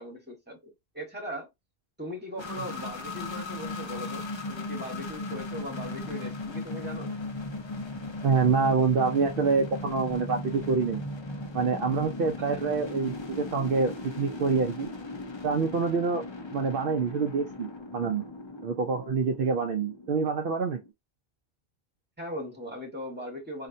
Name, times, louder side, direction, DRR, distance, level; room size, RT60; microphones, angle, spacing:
voice 1, 0.0-1.5 2.0-7.1 12.5-12.6 22.2-23.7, equal, 10° right, 1.3 m, -39 dB
sound 1, 2.4-20.9, left 2 dB, 35° left, 0.6 m, -37 dB
voice 2, 8.2-11.0 11.5-14.9 15.4-16.2 16.5-18.2 18.6-20.8, right 5 dB, 65° right, 0.7 m, -26 dB
4.2 x 2.5 x 2.5 m
omnidirectional pair, 1.0 m